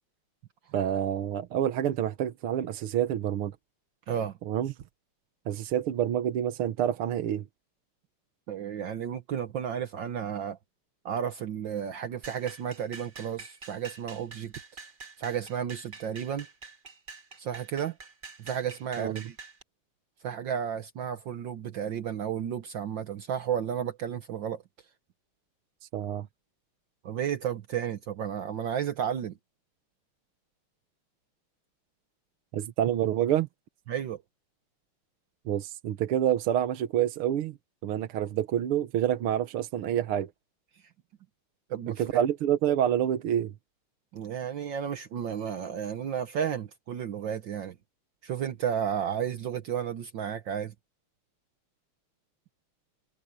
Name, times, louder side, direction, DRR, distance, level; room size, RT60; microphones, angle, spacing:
voice 1, 0.7-3.5 4.5-4.7 5.5-7.5 19.0-19.3 25.9-26.3 32.5-33.5 35.5-37.6 37.8-40.3 41.9-43.5, right 10 dB, 80° right, 1.9 m, -27 dB
voice 2, 4.1-4.4 8.5-10.6 11.0-14.5 15.2-16.5 17.4-18.0 18.4-19.3 20.2-24.6 27.0-29.4 33.9-34.2 41.7-42.0 44.1-47.7 48.2-50.7, right 8 dB, 65° right, 1.6 m, -32 dB
sound 1, 12.2-19.6, right 4 dB, 30° right, 1.1 m, -46 dB
omnidirectional pair, 2.4 m